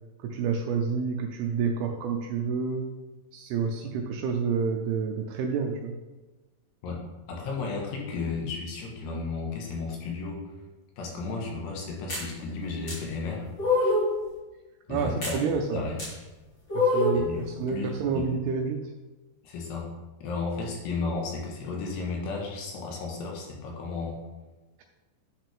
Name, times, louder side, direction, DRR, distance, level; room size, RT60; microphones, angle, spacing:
voice 1, 0.2-2.9 3.3-5.9 14.9-15.9 16.7-18.9, right 5 dB, 80° right, 3 dB, 2.3 m, -29 dB
voice 2, 7.3-10.4 11.0-13.5 14.9-15.4 15.7-15.9 17.1-17.4 17.7-18.3 19.4-19.9 20.2-24.2, left 4 dB, 75° left, -1 dB, 3.4 m, -33 dB
sound 1, 12.1-12.3 12.9-13.0 13.6-14.1 15.2-15.4 16.0-16.1 16.7-17.3, left 2 dB, 30° left, 1.2 m, -24 dB
9.5 x 5.7 x 3.5 m, 1.2 s
omnidirectional pair, 5.0 m